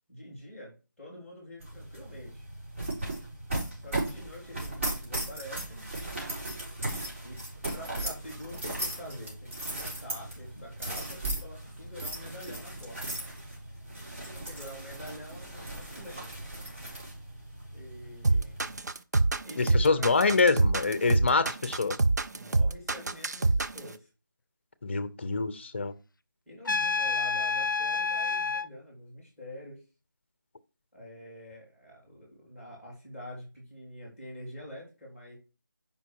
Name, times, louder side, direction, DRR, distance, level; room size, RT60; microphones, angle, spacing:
voice 1, 0.1-2.4 3.8-5.8 7.2-7.4 7.7-13.0 14.2-16.4 17.7-18.6 19.4-20.2 22.3-24.1 26.5-29.8 30.9-35.4, left 1 dB, 5° right, 2.9 m, -46 dB
sound 1, 1.6-18.8, right 1 dB, 40° right, 4.1 m, -37 dB
sound 2, 18.2-23.9, right 2 dB, 55° right, 0.7 m, -25 dB
voice 2, 19.6-22.0 24.8-25.9, left 4 dB, 35° left, 0.8 m, -26 dB
Trumpet, 26.7-28.7, left 4 dB, 75° left, 0.6 m, -28 dB
8.0 x 5.6 x 4.6 m
figure-of-eight pair, 170°, 11 cm